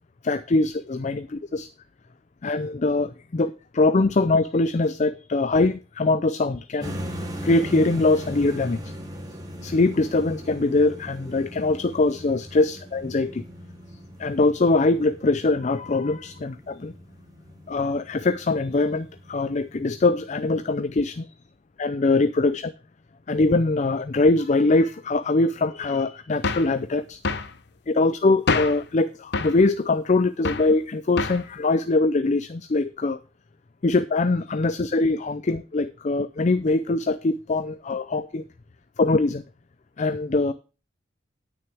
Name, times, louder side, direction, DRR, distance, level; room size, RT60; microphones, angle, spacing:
voice 1, 0.2-1.7 2.4-6.9 7.4-8.9 9.6-13.4 14.2-16.9 17.7-21.3 21.8-22.7 23.3-27.2 27.9-33.2 33.8-38.4 39.0-39.4 40.0-40.5, left 3 dB, 40° left, 12 dB, 0.5 m, -22 dB
sound 1, 6.8-20.8, equal, 20° right, 2.3 m, -40 dB
sound 2, 26.4-26.8 27.2-27.5 28.5-28.9 29.3-29.6 30.4-30.7 31.2-31.5, left 4 dB, 60° left, 0.9 m, -26 dB
9.6 x 9.3 x 3.5 m, 0.34 s
head